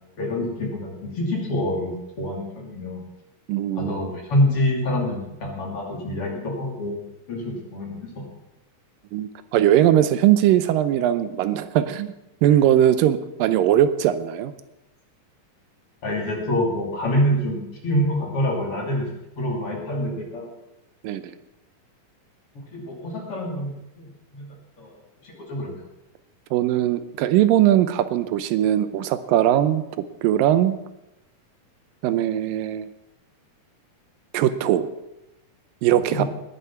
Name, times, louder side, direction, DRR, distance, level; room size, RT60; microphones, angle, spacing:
voice 1, 0.0-3.0 3.7-8.3 16.0-19.1 19.4-20.5 22.7-24.5 24.8-25.0 25.2-25.8 36.1-36.3, left 1 dB, 45° left, 0 dB, 3.3 m, -26 dB
voice 2, 3.5-4.1 9.1-12.1 12.4-14.5 21.0-21.3 26.5-29.8 30.2-30.7 32.0-32.9 34.3-34.9 35.8-36.2, right 11 dB, 85° right, 13 dB, 2.5 m, -20 dB
19.5 x 7.4 x 5.8 m, 0.91 s
omnidirectional pair, 3.9 m